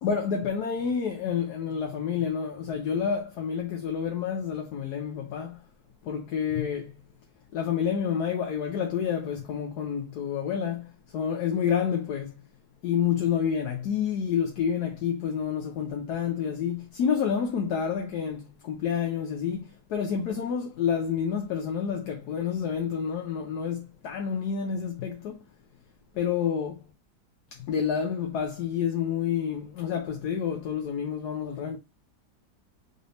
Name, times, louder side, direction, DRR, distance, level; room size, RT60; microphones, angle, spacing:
voice 1, 0.0-5.6 6.0-6.9 7.5-12.4 12.8-25.4 26.1-26.7 27.5-31.8, left 7 dB, 70° left, 1.2 m, -29 dB
4.0 x 3.3 x 3.9 m
omnidirectional pair, 1.8 m